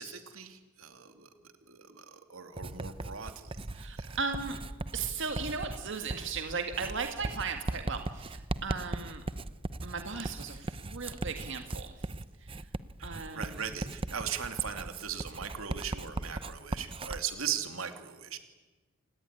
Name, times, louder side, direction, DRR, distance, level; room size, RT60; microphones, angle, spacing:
voice 1, 0.0-3.7 4.0-4.2 13.0-18.4, right 8 dB, 85° right, 7 dB, 2.6 m, -39 dB
Writing, 2.6-17.2, right 2 dB, 25° right, 0.7 m, -39 dB
voice 2, 3.7-4.6 4.9-9.2 9.8-12.1 12.4-12.7 13.0-13.6, right 5 dB, 60° right, 5 dB, 1.9 m, -37 dB
28.5 x 18.0 x 9.9 m, 1.3 s
head